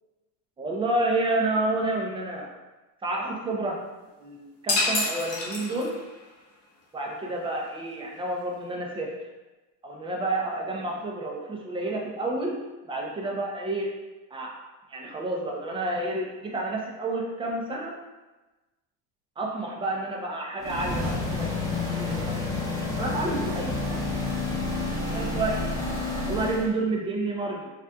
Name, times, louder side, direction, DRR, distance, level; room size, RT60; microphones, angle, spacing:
voice 1, 0.6-2.5 3.0-3.8 4.2-5.9 6.9-9.1 9.8-12.6 12.9-13.9 14.3-14.5 14.9-17.9 19.4-22.4 23.0-24.0 25.0-25.6 26.3-27.7, right 2 dB, 15° right, -1 dB, 0.5 m, -30 dB
sound 1, 4.7-6.2, left 2 dB, 35° left, 0.9 m, -27 dB
sound 2, 20.6-26.7, left 3 dB, 10° left, 1.0 m, -29 dB
4.1 x 2.4 x 2.3 m, 1.1 s
supercardioid pair, 120°, 40 cm